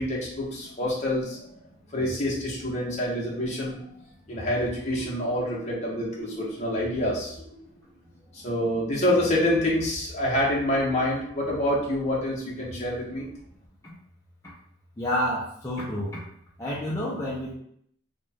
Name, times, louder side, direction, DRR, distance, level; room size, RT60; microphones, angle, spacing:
voice 1, 0.0-1.5 1.9-3.7 4.3-7.6 8.3-13.3, left 1 dB, 35° left, -5 dB, 1.1 m, -27 dB
voice 2, 15.0-16.2 16.6-17.5, equal, 15° left, -7 dB, 0.5 m, -29 dB
3.2 x 2.3 x 4.2 m, 0.68 s
head